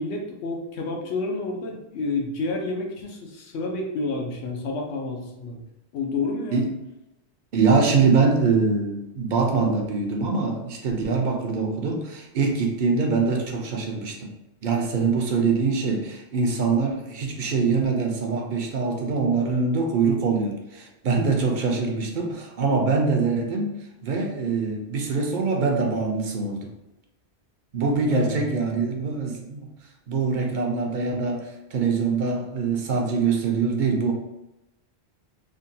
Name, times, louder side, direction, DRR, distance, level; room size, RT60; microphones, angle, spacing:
voice 1, 0.0-5.6 5.9-6.6 28.0-28.5, left 3 dB, 85° left, 1 dB, 0.9 m, -29 dB
voice 2, 7.5-14.3 14.6-26.7 27.7-29.7 30.1-34.1, right 4 dB, 55° right, 2 dB, 0.6 m, -24 dB
3.5 x 2.2 x 2.6 m, 0.93 s
omnidirectional pair, 1.1 m